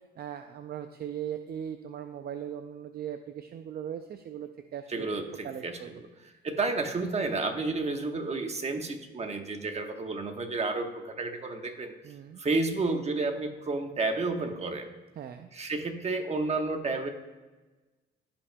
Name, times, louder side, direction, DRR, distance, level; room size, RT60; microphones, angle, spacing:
voice 1, 0.2-5.1 5.4-5.9 12.0-12.4 15.2-15.5, right 9 dB, 50° right, 8 dB, 0.5 m, -39 dB
voice 2, 4.9-6.1 6.4-11.9 12.4-14.9 15.5-17.1, right 3 dB, 35° right, 5 dB, 1.2 m, -31 dB
16.0 x 5.9 x 2.2 m, 1.2 s
cardioid pair, 90°, 20 cm